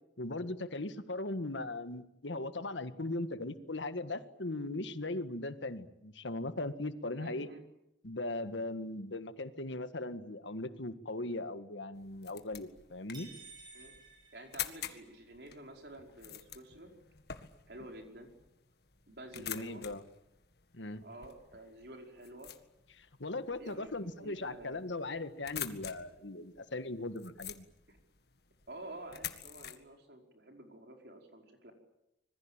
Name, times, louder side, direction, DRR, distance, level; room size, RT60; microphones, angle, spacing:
voice 1, 0.2-7.5 8.0-13.3 19.4-20.0 20.7-21.0 22.9-27.6, left 2 dB, 90° left, 10 dB, 1.7 m, -39 dB
voice 2, 7.1-7.6 13.7-13.9 14.3-16.9 17.7-18.3 19.1-19.8 21.0-22.5 23.6-24.8 27.9-28.0 28.7-31.7, right 1 dB, 65° right, 3 dB, 5.0 m, -50 dB
sound 1, 11.9-29.8, left 10 dB, 60° left, 1.9 m, -48 dB
sound 2, 13.1-15.3, right 4 dB, 25° right, 6.8 m, -54 dB
26.0 x 21.0 x 9.0 m, 0.87 s
head